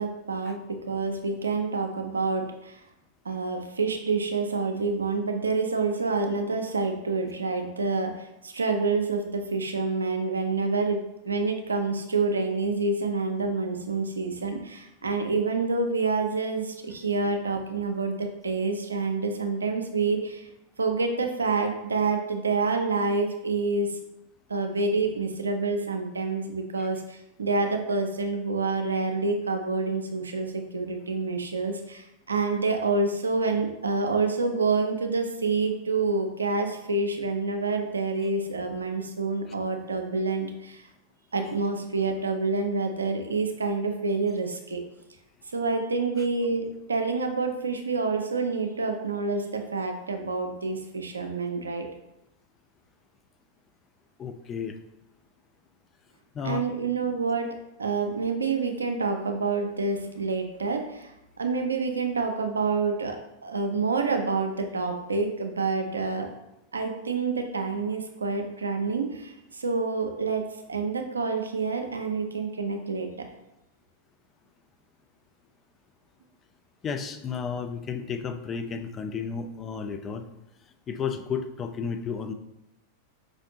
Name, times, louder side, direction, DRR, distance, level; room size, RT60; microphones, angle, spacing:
voice 1, 0.0-2.8 3.2-20.5 20.8-24.0 24.5-40.8 41.3-44.8 45.5-51.9 56.4-61.1 61.4-66.3 66.7-73.1, right 3 dB, 75° right, 5 dB, 0.4 m, -28 dB
voice 2, 54.2-54.8 56.3-56.7 76.8-80.2 80.9-82.3, left 6 dB, 25° left, 8 dB, 0.3 m, -32 dB
4.9 x 2.5 x 2.7 m, 0.87 s
figure-of-eight pair, 90°, 0 cm